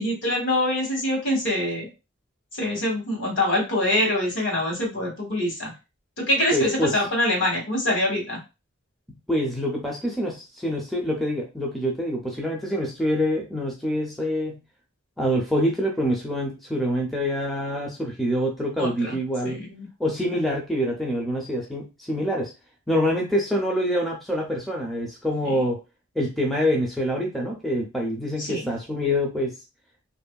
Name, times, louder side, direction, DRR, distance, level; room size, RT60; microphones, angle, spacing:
voice 1, 0.0-1.9 2.5-5.7 6.2-8.4 18.8-19.2 19.4-19.9 20.3-20.4 25.4-25.6 28.4-28.7, left 1 dB, 60° left, 0 dB, 1.4 m, -25 dB
voice 2, 6.5-7.0 9.1-14.6 15.2-19.6 20.0-22.5 22.9-25.8 26.2-29.5, equal, ahead, -2 dB, 0.4 m, -26 dB
2.9 x 2.6 x 2.2 m, 0.27 s
head